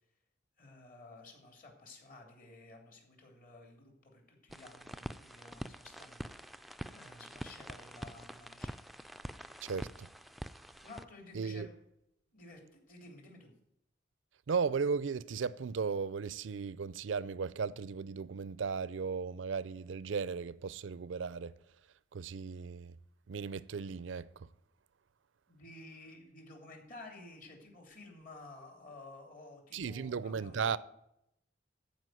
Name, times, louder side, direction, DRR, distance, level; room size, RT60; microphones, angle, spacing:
voice 1, 0.6-8.8 10.8-11.8 12.3-13.5 25.5-30.5, left 2 dB, 50° left, 3.2 m, -53 dB
sound 1, 4.5-11.0, equal, ahead, 0.3 m, -46 dB
voice 2, 9.6-10.1 11.3-11.7 14.5-21.5 22.1-23.0 23.3-24.5 29.7-30.8, right 5 dB, 85° right, 0.5 m, -36 dB
14.0 x 5.2 x 9.2 m
head